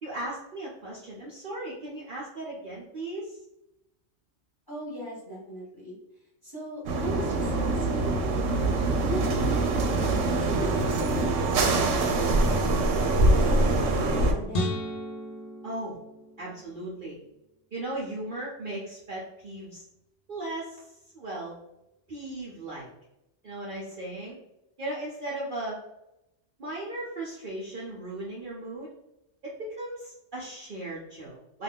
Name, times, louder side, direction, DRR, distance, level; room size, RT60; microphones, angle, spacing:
voice 1, 0.0-3.4 15.6-16.0 16.4-17.2 17.7-19.8 20.3-20.9 21.1-21.6 22.1-22.9 23.4-24.4 24.8-25.8 26.6-28.9 29.4-31.6, right 1 dB, 50° right, -5 dB, 0.7 m, -37 dB
voice 2, 4.7-6.0 6.4-8.4 9.0-9.5 9.9-12.2 12.4-14.8, equal, 20° left, -6 dB, 1.1 m, -38 dB
sound 1, 6.9-14.3, right 2 dB, 85° right, 0.9 m, -24 dB
sound 2, 14.5-16.9, equal, 50° left, 0.5 m, -34 dB
2.5 x 2.3 x 3.4 m, 0.87 s
omnidirectional pair, 1.3 m